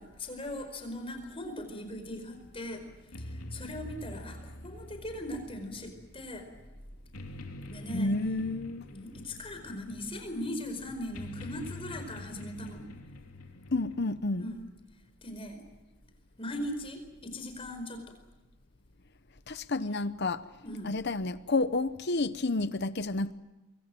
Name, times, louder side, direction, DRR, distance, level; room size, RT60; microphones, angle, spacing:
voice 1, 0.0-2.8 3.2-6.4 7.7-8.1 8.9-12.8 14.4-14.6 15.2-15.6 16.4-18.0 20.6-20.9, left 1 dB, 25° left, 4.7 m, -39 dB
sound 1, 2.3-14.1, left 1 dB, 85° left, 2.7 m, -46 dB
voice 2, 7.9-8.9 13.7-14.5 19.5-20.4 20.8-23.3, left 2 dB, 50° left, 0.9 m, -30 dB
25.0 x 23.5 x 7.7 m
head